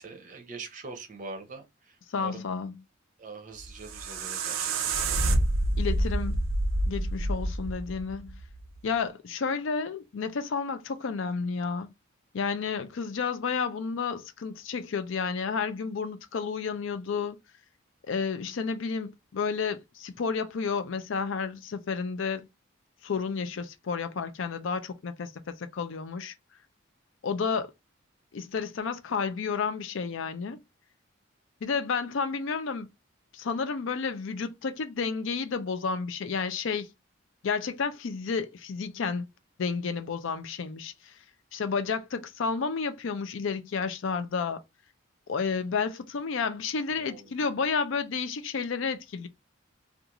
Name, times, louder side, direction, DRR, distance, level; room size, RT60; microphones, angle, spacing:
voice 1, 0.0-2.4 3.2-4.8 47.0-47.3, right 3 dB, 40° right, 0.5 m, -43 dB
voice 2, 2.1-2.8 5.8-6.4 6.9-8.4 8.8-11.9 12.3-17.4 18.1-22.5 23.0-26.3 27.2-27.7 28.3-30.6 31.6-32.9 33.3-36.9 37.4-39.3 39.6-41.2 41.5-44.6 45.3-49.3, left 5 dB, 70° left, 0.4 m, -31 dB
sound 1, 3.6-8.7, right 2 dB, 85° right, 0.5 m, -28 dB
2.5 x 2.4 x 2.9 m
head